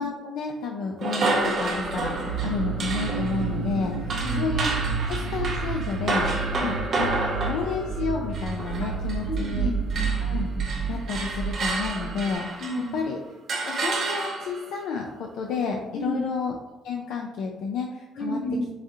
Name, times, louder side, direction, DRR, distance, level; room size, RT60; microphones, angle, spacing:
voice 1, 0.0-4.7 5.1-6.7 7.0-9.7 10.2-10.5 10.9-12.6 12.9-13.2 13.5-16.5 16.8-18.4, left 5 dB, 80° left, 1 dB, 0.4 m, -31 dB
sound 1, 1.0-9.6 9.9-13.0 13.5-14.7, right 3 dB, 40° right, 0.5 m, -30 dB
sound 2, 1.6-12.2, right 5 dB, 90° right, 0.5 m, -30 dB
voice 2, 4.2-4.5 6.5-6.8 8.8-8.9 9.2-10.1 12.6-13.0 15.9-16.2 18.1-18.7, left 1 dB, 50° left, -3 dB, 1.1 m, -31 dB
4.7 x 2.4 x 2.7 m, 1.0 s
cardioid pair, 180°, 0 cm